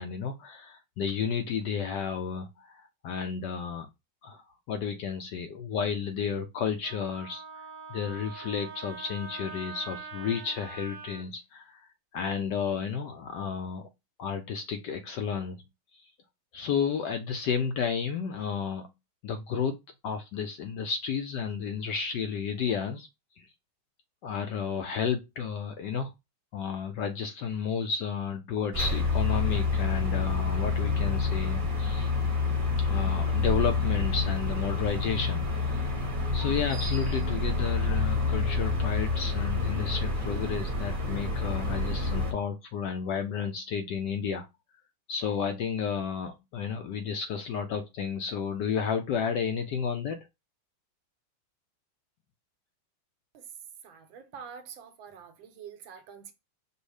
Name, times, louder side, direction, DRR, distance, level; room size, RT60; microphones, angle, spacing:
voice 1, 0.0-3.9 4.2-7.4 7.9-11.8 12.1-13.9 14.2-15.6 15.9-16.0 16.5-18.9 19.2-19.8 20.0-23.1 23.4-23.5 24.2-26.1 26.5-32.1 32.8-35.9 36.3-44.5 45.1-50.2, left 6 dB, 70° left, 1.0 m, -32 dB
Wind instrument woodwind instrument, 6.8-11.2, right 4 dB, 55° right, 1.1 m, -43 dB
sound 1, 28.7-42.3, left 3 dB, 35° right, 0.9 m, -28 dB
voice 2, 53.8-56.3, right 7 dB, 75° right, 1.5 m, -46 dB
5.2 x 2.1 x 4.8 m
omnidirectional pair, 2.3 m